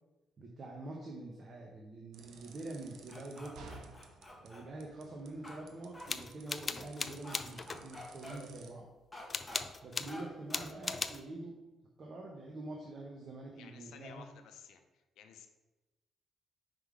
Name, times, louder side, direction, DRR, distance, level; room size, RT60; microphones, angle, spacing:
voice 1, 0.4-3.8 4.4-8.9 9.8-11.6 12.0-14.2, right 2 dB, 45° right, 0 dB, 0.9 m, -45 dB
sound 1, 2.1-8.7, right 4 dB, 75° right, 0.7 m, -56 dB
sound 2, 3.1-4.6 5.4-5.6 5.9-6.1 7.2-7.4 7.7-8.4 9.1-9.6 10.1-10.2 10.5-10.7, left 1 dB, 10° left, 1.4 m, -48 dB
sound 3, 6.1-7.8 9.3-10.1 10.5-11.2, left 4 dB, 30° left, 0.4 m, -38 dB
voice 2, 13.6-15.5, left 7 dB, 80° left, 7 dB, 0.6 m, -55 dB
5.3 x 3.7 x 4.8 m, 1.1 s
cardioid pair, 90°, 0 cm